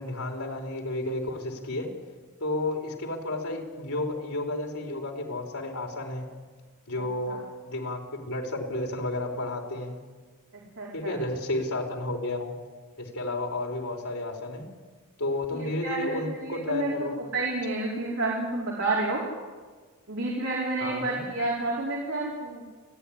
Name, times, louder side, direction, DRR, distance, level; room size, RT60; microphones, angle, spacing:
voice 1, 0.0-1.9 2.4-6.3 6.9-7.4 7.6-10.0 10.9-12.5 13.0-14.6 15.2-17.2 20.8-21.3, left 2 dB, 85° left, 1 dB, 4.1 m, -32 dB
voice 2, 10.5-11.2 15.5-19.2 20.1-22.6, right 2 dB, 65° right, -4 dB, 4.6 m, -30 dB
29.5 x 10.5 x 10.0 m, 1.4 s
head